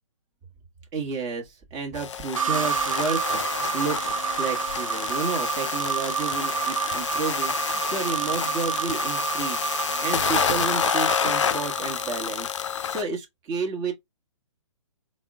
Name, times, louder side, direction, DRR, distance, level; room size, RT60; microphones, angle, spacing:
voice 1, 0.9-3.2 3.5-9.6 10.0-12.5 12.9-13.9, right 4 dB, 25° right, 1.1 m, -31 dB
sound 1, 1.9-13.0, left 8 dB, 65° left, 0.4 m, -29 dB
sound 2, 2.4-12.3, right 7 dB, 85° right, 0.7 m, -29 dB
4.2 x 2.1 x 3.6 m
hypercardioid pair, 135°, 17 cm